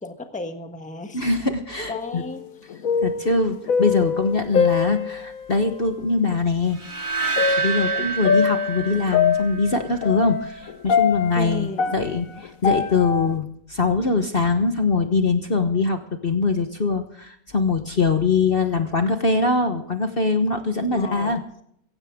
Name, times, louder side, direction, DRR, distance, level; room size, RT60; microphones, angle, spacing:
voice 1, 0.0-1.2 1.9-2.8 11.3-11.9 20.9-21.4, left 2 dB, 5° left, 6 dB, 1.2 m, -34 dB
voice 2, 1.1-2.2 3.0-7.1 7.5-21.4, left 4 dB, 40° left, 6 dB, 1.3 m, -22 dB
sound 1, 1.9-2.5 2.7-5.5 6.3-6.4 7.4-13.3, left 6 dB, 65° left, 1.4 m, -24 dB
sound 2, 6.7-9.9, right 5 dB, 30° right, 2.0 m, -28 dB
16.5 x 15.5 x 3.6 m, 0.69 s
omnidirectional pair, 1.7 m